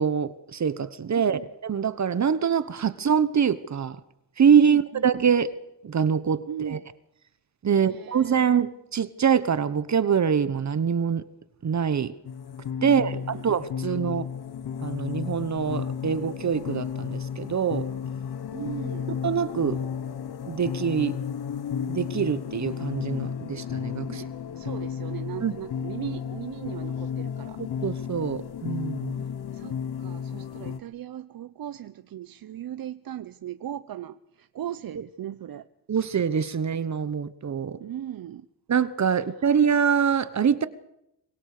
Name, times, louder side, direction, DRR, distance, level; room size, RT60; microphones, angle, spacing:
voice 1, 0.0-4.0 4.4-5.5 5.8-6.8 7.6-11.2 11.6-12.1 12.8-14.3 14.8-17.9 19.2-19.8 20.4-21.2 21.9-24.2 25.4-25.5 27.6-29.1 35.9-37.8 38.7-40.7, right 7 dB, 45° right, 14 dB, 1.2 m, -24 dB
voice 2, 1.1-1.5 4.6-5.0 6.5-6.8 7.7-8.5 12.8-13.4 14.0-14.1 18.5-19.2 24.1-27.6 29.5-35.7 37.8-38.5 39.4-39.5, right 11 dB, 60° right, 12 dB, 0.9 m, -38 dB
sound 1, 12.2-30.8, left 7 dB, 70° left, 1.3 m, -33 dB
25.0 x 24.5 x 6.7 m, 0.83 s
wide cardioid pair, 130°, 40 cm